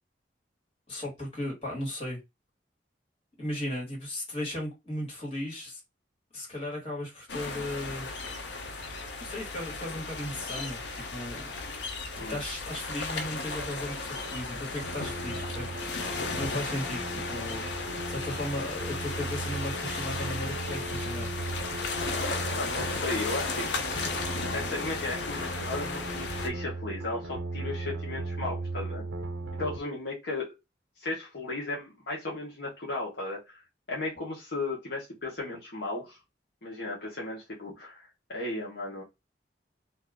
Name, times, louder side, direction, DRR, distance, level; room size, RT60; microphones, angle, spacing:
voice 1, 0.9-2.2 3.4-5.8 6.3-8.1 9.2-11.5 12.1-21.3, left 1 dB, 35° left, 1.6 m, -36 dB
sound 1, 7.3-26.5, left 3 dB, 80° left, 0.7 m, -35 dB
sound 2, 14.8-29.8, right 2 dB, 80° right, 0.5 m, -37 dB
voice 2, 22.5-23.9 24.5-29.0 29.6-30.6 31.0-33.6 33.9-36.2 36.6-39.0, left 2 dB, 65° left, 1.0 m, -35 dB
2.6 x 2.4 x 3.4 m
head